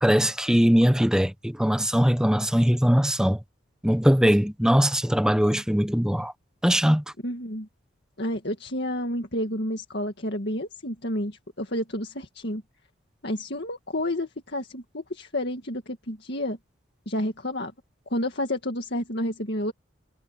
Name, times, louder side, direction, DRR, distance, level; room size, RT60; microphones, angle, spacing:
voice 1, 0.0-3.4 3.8-6.3 6.6-7.0, equal, 5° right, 1.0 m, -21 dB
voice 2, 7.2-7.7 8.2-12.6 13.2-16.6 17.1-17.7 18.1-19.7, left 1 dB, 55° left, 2.1 m, -30 dB
head